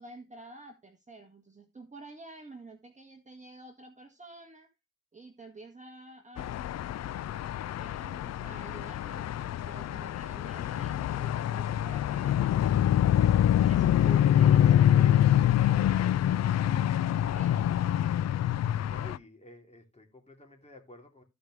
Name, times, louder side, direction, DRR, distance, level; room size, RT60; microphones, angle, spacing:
voice 1, 0.0-4.7 5.1-7.4 7.8-12.7 13.2-17.8, right 2 dB, 25° right, 1.8 m, -49 dB
sound 1, 6.4-19.2, left 11 dB, 55° left, 0.4 m, -25 dB
voice 2, 18.8-21.2, left 2 dB, 20° left, 2.8 m, -51 dB
15.0 x 5.2 x 3.2 m
cardioid pair, 70°, 31 cm